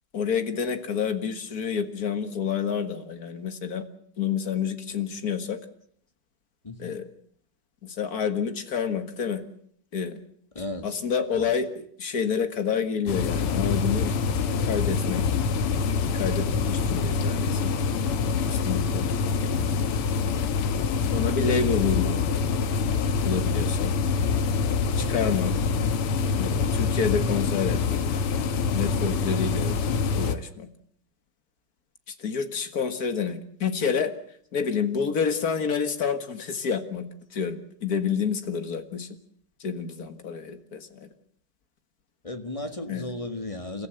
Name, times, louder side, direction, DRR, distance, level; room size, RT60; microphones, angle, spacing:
voice 1, 0.1-3.8 4.2-5.6 6.8-7.1 7.8-9.4 9.9-10.2 10.8-14.1 14.6-15.4 16.0-17.7 18.3-19.1 21.1-22.2 23.2-23.9 25.0-25.5 26.4-28.0 28.7-29.7 30.1-30.7 32.1-34.1 34.5-39.1 39.6-41.1 42.9-43.1, left 6 dB, 45° left, 2.1 m, -28 dB
voice 2, 10.5-10.9 11.3-11.5 18.7-19.0 42.2-43.9, left 2 dB, 15° left, 1.5 m, -35 dB
sound 1, 13.1-30.3, left 5 dB, 85° left, 2.1 m, -25 dB
30.0 x 14.5 x 8.0 m
omnidirectional pair, 2.4 m